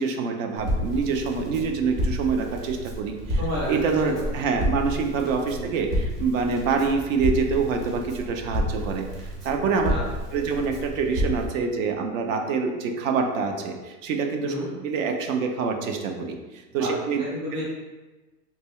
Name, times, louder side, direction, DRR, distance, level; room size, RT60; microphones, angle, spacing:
voice 1, 0.0-3.4 3.7-10.0 10.3-14.5 14.8-16.4 16.7-17.2, right 5 dB, 60° right, 4 dB, 0.6 m, -26 dB
Crackle, 0.6-11.5, equal, 40° right, 1.1 m, -30 dB
voice 2, 3.4-3.7 4.1-4.3 5.5-5.6 9.9-10.4 14.4-14.7 16.8-17.6, left 1 dB, 15° right, -6 dB, 0.3 m, -32 dB
3.9 x 2.3 x 3.0 m, 1.2 s
supercardioid pair, 145°, 45 cm